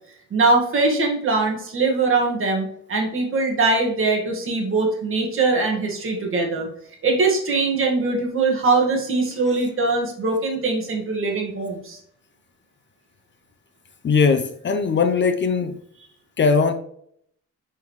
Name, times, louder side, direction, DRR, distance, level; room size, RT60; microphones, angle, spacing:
voice 1, 0.3-6.7 7.0-12.0, right 3 dB, 40° right, 1.9 m, -22 dB
voice 2, 14.0-15.8 16.4-16.7, left 5 dB, 35° left, 0.6 m, -19 dB
6.7 x 5.4 x 3.2 m
cardioid pair, 150°, 31 cm